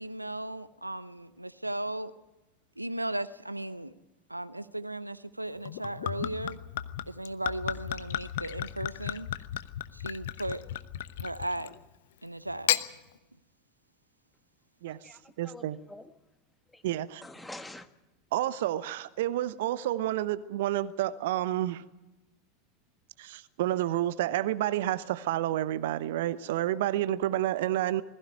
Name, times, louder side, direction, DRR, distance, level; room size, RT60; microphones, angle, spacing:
voice 1, 0.0-2.1 2.8-3.9 4.3-6.6 7.1-9.3 9.9-10.7 11.2-11.7 12.2-12.7, right 1 dB, 90° right, 0.7 m, -36 dB
Gurgling / Chink clink / Liquid, 5.7-11.8 12.5-12.9, left 13 dB, 60° left, 0.9 m, -34 dB
voice 2, 14.9-16.1 16.7-16.8 17.2-17.9, left 2 dB, 5° left, 1.6 m, -47 dB
voice 3, 15.4-15.8 16.8-17.2 18.3-21.8 23.2-28.0, right 13 dB, 60° right, 0.9 m, -29 dB
21.0 x 15.5 x 9.5 m
figure-of-eight pair, 80°, 0 cm